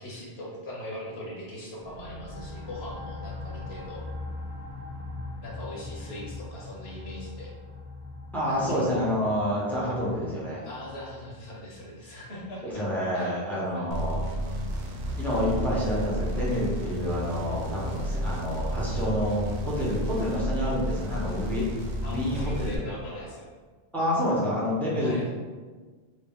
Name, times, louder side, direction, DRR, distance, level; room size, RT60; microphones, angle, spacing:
voice 1, 0.0-4.1 5.4-7.5 8.5-9.1 10.6-12.8 13.1-13.9 22.0-23.5 25.0-25.2, left 1 dB, 80° left, -4 dB, 1.2 m, -40 dB
sound 1, 1.8-13.1, left 2 dB, 30° left, 0.7 m, -41 dB
voice 2, 8.3-10.7 12.6-14.2 15.2-23.3 23.9-25.3, equal, ahead, -7 dB, 0.9 m, -28 dB
sound 2, 13.9-22.8, equal, 55° right, 0.6 m, -31 dB
3.0 x 2.9 x 3.6 m, 1.4 s
omnidirectional pair, 1.0 m